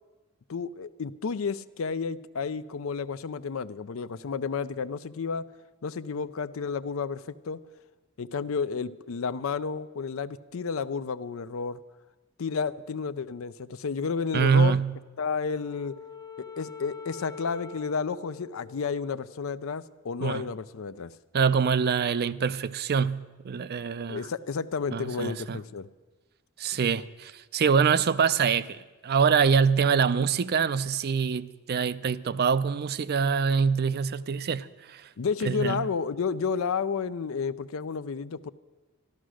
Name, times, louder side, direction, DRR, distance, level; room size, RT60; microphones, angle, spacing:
voice 1, 0.5-5.5 5.8-7.6 8.2-11.8 12.4-14.8 15.2-16.0 16.4-21.1 24.1-25.9 35.2-38.5, left 5 dB, 70° left, 0.5 m, -31 dB
voice 2, 14.3-14.9 20.2-20.5 21.3-24.3 24.9-25.6 26.6-35.1 35.4-35.9, right 6 dB, 50° right, 0.4 m, -25 dB
Wind instrument woodwind instrument, 15.2-19.7, left 6 dB, 15° left, 0.5 m, -45 dB
13.0 x 12.5 x 6.3 m
head